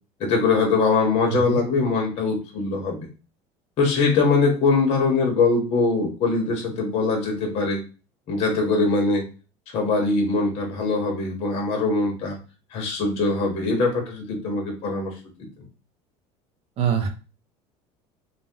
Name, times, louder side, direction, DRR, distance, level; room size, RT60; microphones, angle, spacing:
voice 1, 0.2-3.1 3.8-7.8 8.3-9.3 9.7-12.4 12.7-15.1, left 3 dB, 45° left, 1 dB, 0.8 m, -22 dB
voice 2, 1.3-1.6 16.8-17.1, right 8 dB, 45° right, 5 dB, 0.6 m, -24 dB
2.6 x 2.1 x 3.5 m, 0.34 s
cardioid pair, 150°, 14 cm